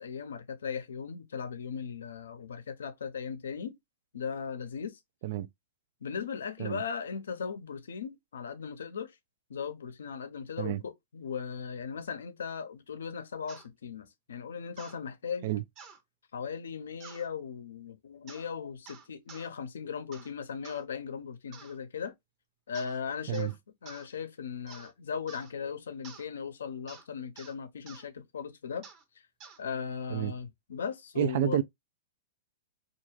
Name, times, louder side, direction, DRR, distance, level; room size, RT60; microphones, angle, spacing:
voice 1, 0.0-3.8 4.1-5.0 6.0-9.2 9.5-15.5 16.3-22.1 22.7-23.5 23.8-28.8 29.6-31.6, left 6 dB, 85° left, 0.6 m, -38 dB
sound 1, 13.5-13.7 14.8-15.0 15.8-16.0 17.0-17.3 18.3-18.5 18.9-19.5 20.1-20.3 20.6-20.8 21.5-21.8 22.7-23.0 23.3-23.6 23.9-24.1 24.7-24.9 25.3-25.5 26.0-26.3 26.9-27.1 27.4-27.5 27.9-28.0 28.8-29.0 29.4-29.6, right 6 dB, 35° right, 0.8 m, -50 dB
voice 2, 31.2-31.6, right 12 dB, 55° right, 0.4 m, -29 dB
2.5 x 2.3 x 3.1 m
hypercardioid pair, 135°, 0 cm